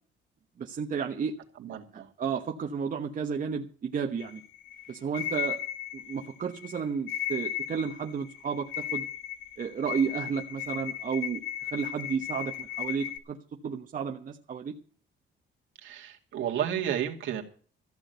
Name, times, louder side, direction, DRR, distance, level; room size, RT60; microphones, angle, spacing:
voice 1, 0.6-1.3 1.7-4.4 4.9-5.6 5.9-9.0 9.6-11.4 11.7-13.4 13.6-14.7, right 6 dB, 40° right, 2 dB, 1.2 m, -32 dB
voice 2, 1.6-2.1 15.8-17.4, right 10 dB, 75° right, 1 dB, 2.4 m, -32 dB
sound 1, 4.2-13.2, left 11 dB, 80° left, 1.4 m, -36 dB
14.5 x 6.3 x 9.2 m, 0.42 s
cardioid pair, 125°, 20 cm